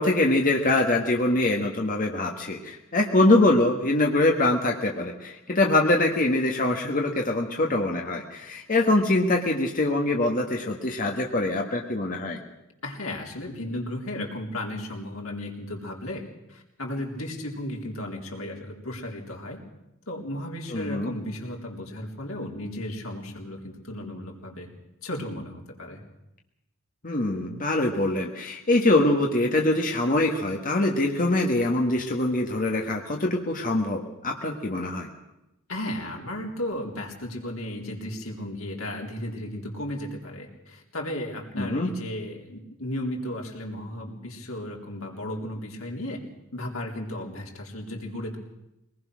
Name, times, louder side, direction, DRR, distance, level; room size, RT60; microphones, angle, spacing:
voice 1, 0.0-12.4 20.7-21.1 27.0-35.1 41.6-41.9, left 2 dB, 40° left, 1 dB, 1.6 m, -24 dB
voice 2, 12.8-19.6 20.1-24.7 25.0-26.0 35.7-46.2 46.5-48.4, left 1 dB, 80° left, 0 dB, 3.8 m, -35 dB
23.5 x 19.5 x 6.3 m, 0.89 s
head